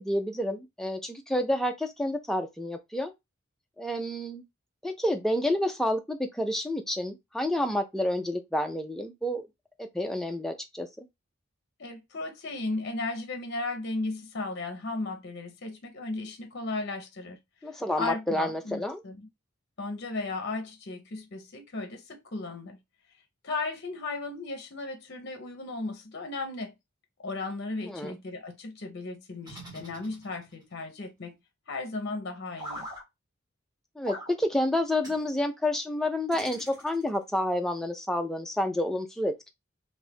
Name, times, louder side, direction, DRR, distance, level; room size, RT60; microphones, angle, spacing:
voice 1, 0.0-3.1 3.8-4.4 4.8-9.5 9.8-11.1 17.6-19.0 27.9-28.2 34.0-39.5, left 1 dB, ahead, 0.4 m, -29 dB
voice 2, 11.8-17.4 17.7-19.3 19.8-22.8 23.4-26.7 27.2-31.3 31.7-32.9, left 3 dB, 55° left, 0.7 m, -35 dB
sound 1, 29.4-30.6 32.6-33.0 34.0-34.3 35.0-35.2 36.3-37.2, equal, 20° right, 1.2 m, -42 dB
2.6 x 2.4 x 3.4 m
head